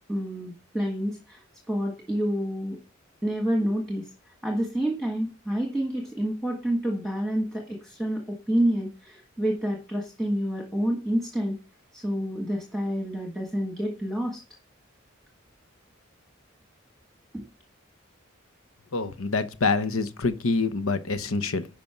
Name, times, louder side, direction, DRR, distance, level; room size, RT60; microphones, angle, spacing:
voice 1, 0.1-2.8 3.2-4.1 4.4-11.6 11.9-14.4 17.3-17.4, equal, 5° left, 1.5 m, -28 dB
voice 2, 18.9-21.7, left 3 dB, 90° left, 1.0 m, -26 dB
11.0 x 5.3 x 5.9 m
head